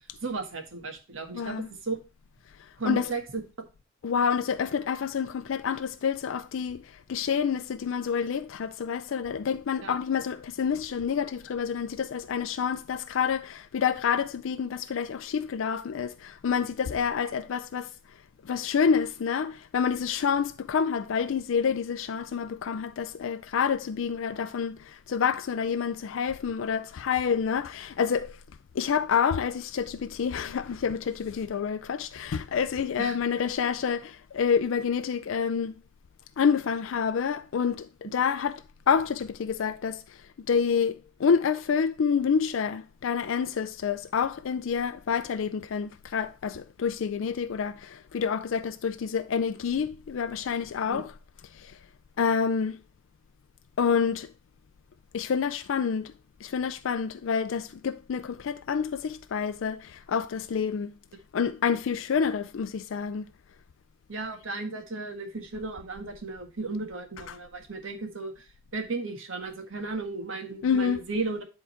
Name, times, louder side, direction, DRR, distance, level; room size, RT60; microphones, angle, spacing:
voice 1, 0.2-1.5 1.8-2.0 2.8-3.4 9.8-9.9 33.0-33.2 50.9-51.0 64.1-68.3 68.7-71.4, right 3 dB, 75° right, 1.6 m, -34 dB
voice 2, 1.3-1.7 2.8-3.1 4.0-17.9 18.4-28.4 28.7-35.7 36.4-40.2 40.5-51.1 51.5-51.8 52.2-52.8 53.8-54.3 55.1-56.1 56.4-60.9 61.3-63.2 67.3-67.4 70.6-71.0, left 6 dB, 75° left, 0.4 m, -28 dB
10.0 x 3.8 x 4.3 m
head